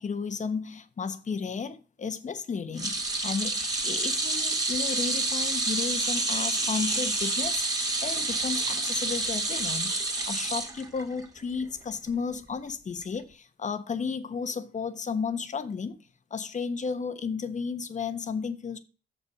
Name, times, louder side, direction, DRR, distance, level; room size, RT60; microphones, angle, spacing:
voice 1, 0.0-7.7 8.0-10.0 10.3-16.0 16.3-18.8, left 5 dB, 40° left, 1.1 m, -33 dB
sound 1, 2.8-11.2 11.6-11.8 13.0-13.1, right 2 dB, 20° right, 2.3 m, -28 dB
6.8 x 5.7 x 6.0 m
cardioid pair, 90°, 20 cm